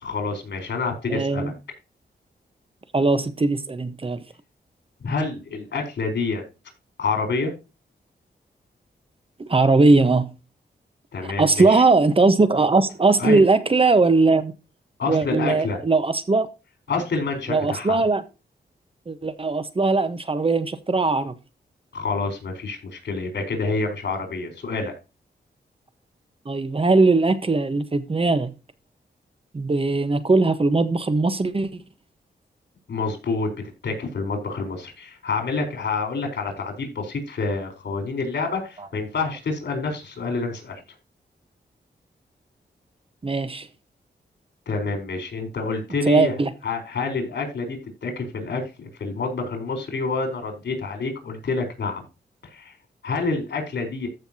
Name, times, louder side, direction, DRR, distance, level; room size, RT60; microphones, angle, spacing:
voice 1, 0.0-1.5 5.0-6.4 7.0-7.5 11.1-11.8 13.2-13.4 15.0-15.8 16.9-18.0 21.9-24.9 32.9-33.5 33.8-40.8 44.7-46.3 46.6-52.0 52.5-52.7 53.0-54.1, left 4 dB, 75° left, 4.1 m, -27 dB
voice 2, 1.1-1.5 2.9-4.2 9.4-10.3 11.4-14.5 15.1-16.5 17.5-18.2 19.1-21.3 26.5-28.5 29.5-31.7 43.2-43.7 46.1-46.5, right 3 dB, 30° right, 1.1 m, -19 dB
14.5 x 5.7 x 2.8 m
wide cardioid pair, 100°, 18 cm